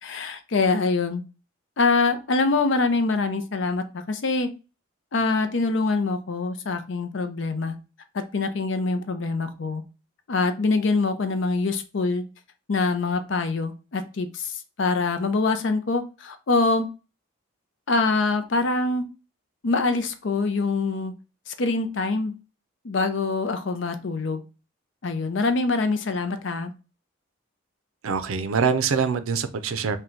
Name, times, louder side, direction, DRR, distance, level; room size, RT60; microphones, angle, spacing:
voice 1, 0.0-1.2 1.8-4.5 5.1-7.8 8.1-9.8 10.3-12.2 12.7-16.9 17.9-19.0 19.6-21.1 21.5-22.3 22.8-24.4 25.0-26.7, left 3 dB, 60° left, 9 dB, 0.5 m, -24 dB
voice 2, 28.0-30.0, right 6 dB, 80° right, 10 dB, 0.5 m, -24 dB
3.8 x 2.2 x 4.4 m, 0.32 s
head